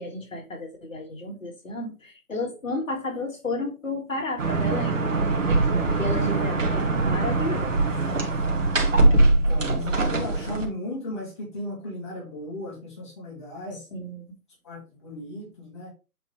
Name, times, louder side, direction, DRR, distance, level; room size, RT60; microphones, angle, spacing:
voice 1, 0.0-5.0 6.0-7.7 13.9-14.2, left 2 dB, 60° left, 2.5 m, -32 dB
sound 1, 4.4-10.6, right 2 dB, 55° right, 1.9 m, -22 dB
voice 2, 8.9-13.9 14.6-15.9, left 1 dB, 20° left, 2.5 m, -36 dB
8.1 x 4.3 x 3.4 m
hypercardioid pair, 180°, 44 cm